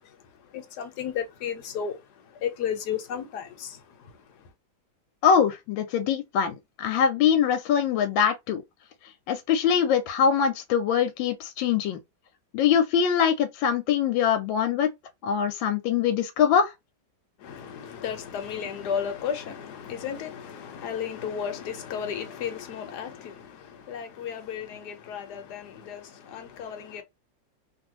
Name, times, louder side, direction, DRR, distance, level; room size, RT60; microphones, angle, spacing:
voice 1, 0.5-4.2 17.4-27.0, left 8 dB, 65° left, 1.2 m, -34 dB
voice 2, 5.2-8.6 9.3-12.0 12.5-14.9 15.2-16.7, left 7 dB, 90° left, 1.4 m, -23 dB
2.8 x 2.6 x 3.0 m
omnidirectional pair, 2.0 m